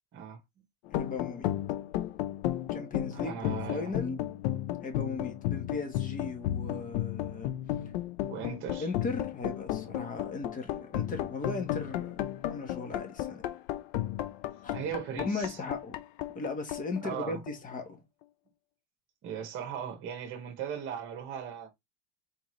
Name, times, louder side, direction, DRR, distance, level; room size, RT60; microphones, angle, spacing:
sound 1, 0.9-17.7, left 13 dB, 65° left, 0.7 m, -34 dB
voice 1, 0.9-1.5 2.7-4.2 4.8-7.5 8.8-13.4 14.6-14.7 15.1-16.0 16.3-18.0, left 3 dB, 25° left, 1.5 m, -37 dB
voice 2, 3.1-3.9 8.3-8.9 14.7-15.6 17.0-17.4 19.2-21.7, right 8 dB, 35° right, 1.6 m, -38 dB
4.3 x 3.8 x 3.2 m
supercardioid pair, 125°, 34 cm